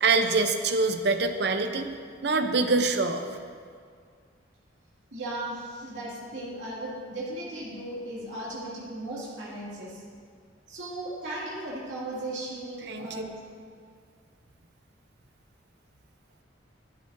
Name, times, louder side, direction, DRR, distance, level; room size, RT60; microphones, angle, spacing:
voice 1, 0.0-1.9 2.2-3.2 12.9-13.1, right 3 dB, 60° right, 7 dB, 0.6 m, -24 dB
voice 2, 5.1-10.0 10.7-13.4, right 1 dB, 80° right, -7 dB, 2.4 m, -36 dB
12.0 x 11.5 x 2.7 m, 2.1 s
head